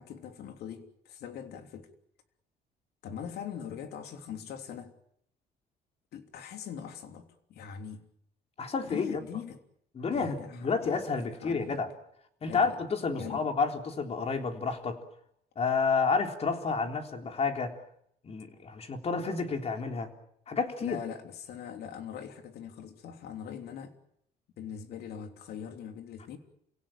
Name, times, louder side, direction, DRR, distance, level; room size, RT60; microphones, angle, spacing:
voice 1, 0.0-1.9 3.0-4.9 6.1-8.1 8.8-9.6 10.1-11.0 11.4-11.8 12.5-12.8 13.1-13.5 20.8-23.9 24.6-26.4, left 8 dB, 70° left, 3.2 m, -42 dB
voice 2, 8.6-9.1 10.0-11.9 12.4-15.0 15.6-17.8 18.2-20.1 20.5-21.0, left 4 dB, 40° left, 3.7 m, -30 dB
29.0 x 17.0 x 8.9 m
cardioid pair, 110°, 17 cm